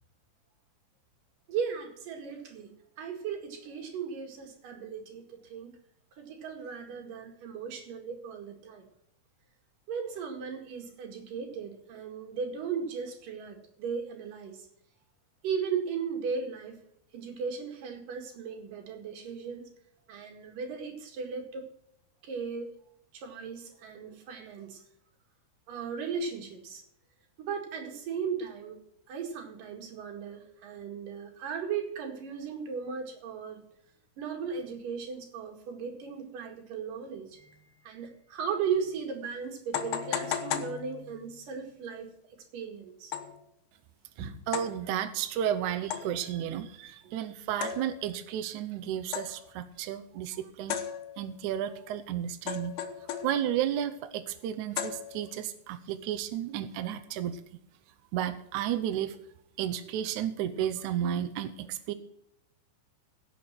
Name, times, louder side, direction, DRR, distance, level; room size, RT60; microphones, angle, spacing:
voice 1, 1.5-2.7 3.0-5.7 6.2-8.8 9.9-14.7 15.4-16.8 17.1-19.7 20.1-21.7 22.2-22.7 23.1-24.8 25.7-26.8 27.4-28.8 29.1-33.6 34.2-42.1 42.5-43.1 44.2-44.4, right 6 dB, 60° right, 3 dB, 3.5 m, -36 dB
sound 1, 38.8-38.9 39.7-41.4 43.1-43.5 44.5-44.9 45.9-46.3 47.6-48.2 49.1-49.6 50.7-51.5 52.5-53.6 54.8-55.5, left 9 dB, 70° left, 2.6 m, -36 dB
voice 2, 44.2-50.8 51.2-52.8 53.2-57.4 58.1-59.2 59.6-61.9, right 10 dB, 75° right, 9 dB, 1.8 m, -32 dB
16.5 x 7.0 x 6.0 m, 0.75 s
omnidirectional pair, 4.5 m